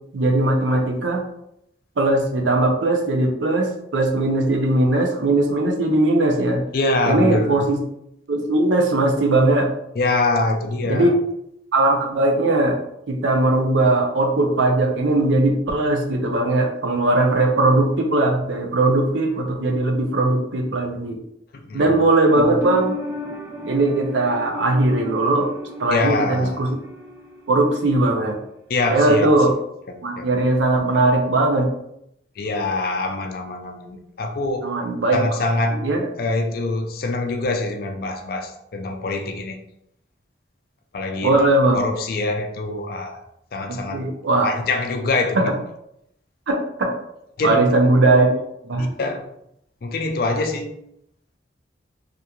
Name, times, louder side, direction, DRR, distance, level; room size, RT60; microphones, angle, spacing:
voice 1, 0.1-1.2 2.0-6.6 7.1-7.8 8.3-9.7 10.9-11.1 11.7-12.8 13.1-21.2 21.7-23.0 23.7-25.5 25.8-26.7 27.5-28.4 28.9-29.5 30.0-31.7 34.6-35.2 35.8-36.1 41.2-41.8 43.7-44.5 45.3-45.5 46.5-46.9 47.4-48.9, right 2 dB, 80° right, 2 dB, 0.5 m, -19 dB
voice 2, 6.7-7.6 10.0-11.1 21.5-21.9 25.9-26.6 28.7-29.3 29.9-30.3 32.4-34.7 35.1-35.9 36.2-39.6 40.9-41.4 41.7-43.2 43.5-44.0 44.4-45.4 47.4-47.6 48.8-49.3 49.8-50.8, left 2 dB, 50° left, 4 dB, 0.4 m, -24 dB
sound 1, 22.3-27.9 28.1-28.2, left 2 dB, 15° right, 0.4 m, -33 dB
2.5 x 2.3 x 2.8 m, 0.77 s
head